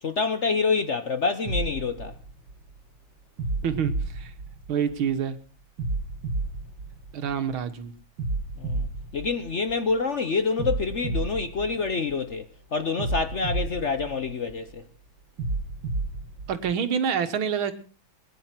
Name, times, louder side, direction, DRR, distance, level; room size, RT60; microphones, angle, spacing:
voice 1, 0.0-2.2 8.6-8.9 9.1-14.8, left 4 dB, 50° left, 0.9 m, -27 dB
sound 1, 1.5-2.8 3.4-5.1 5.8-7.6 8.2-10.0 10.6-12.4 13.0-14.7 15.4-16.8, right 2 dB, 65° right, 2.5 m, -32 dB
voice 2, 3.6-4.3 4.7-5.4 7.1-7.9 16.5-17.7, right 7 dB, 90° right, 2.2 m, -27 dB
22.0 x 10.5 x 5.8 m
omnidirectional pair, 2.2 m